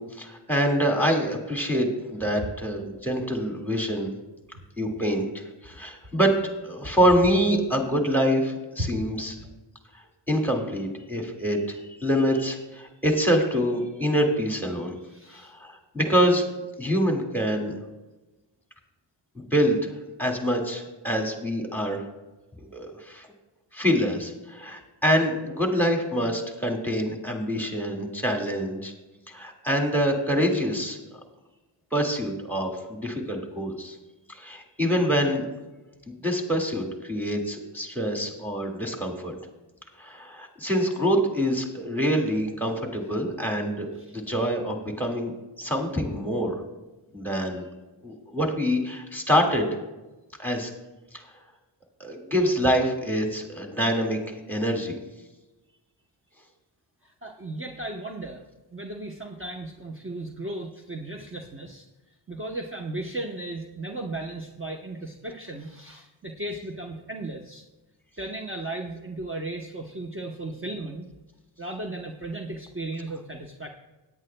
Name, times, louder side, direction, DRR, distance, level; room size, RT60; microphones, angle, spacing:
voice 1, 0.0-4.1 4.8-6.3 6.6-9.4 10.3-14.9 15.3-16.5 16.8-17.8 19.4-19.9 20.2-22.0 22.7-23.3 23.7-28.9 29.3-31.0 31.9-34.0 34.3-35.4 36.2-39.3 40.0-45.3 45.6-46.6 47.1-47.7 48.0-49.7 50.4-50.7 51.1-51.2 52.0-55.0, equal, 5° left, 2 dB, 2.0 m, -25 dB
voice 2, 15.1-15.5 44.0-44.2 57.2-58.4 58.7-61.9 62.3-67.6 68.2-71.1 71.6-73.7, right 2 dB, 25° right, 1 dB, 0.9 m, -35 dB
17.5 x 9.8 x 2.2 m, 1.1 s
wide cardioid pair, 75°, 47 cm